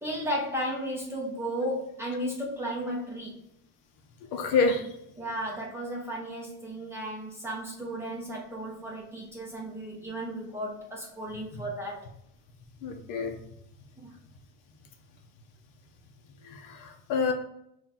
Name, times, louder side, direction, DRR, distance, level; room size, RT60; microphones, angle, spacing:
voice 1, 0.0-3.4 5.2-12.1 14.0-14.2, right 1 dB, 5° right, -3 dB, 0.6 m, -34 dB
voice 2, 4.3-4.9 11.5-11.6 12.8-13.4 16.4-17.3, left 4 dB, 50° left, 4 dB, 0.7 m, -27 dB
3.7 x 2.4 x 4.1 m, 0.75 s
cardioid pair, 150°, 39 cm